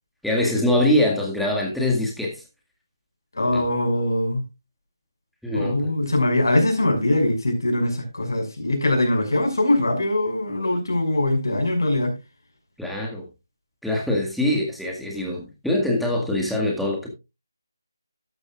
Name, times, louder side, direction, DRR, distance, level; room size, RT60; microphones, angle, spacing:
voice 1, 0.2-2.4 3.5-3.6 5.4-5.9 12.8-13.3 13.8-17.1, left 1 dB, ahead, 1.9 m, -23 dB
voice 2, 3.3-4.4 5.5-12.1, left 1 dB, 65° left, 6.1 m, -22 dB
13.5 x 11.5 x 2.4 m
figure-of-eight pair, 155°, 2 cm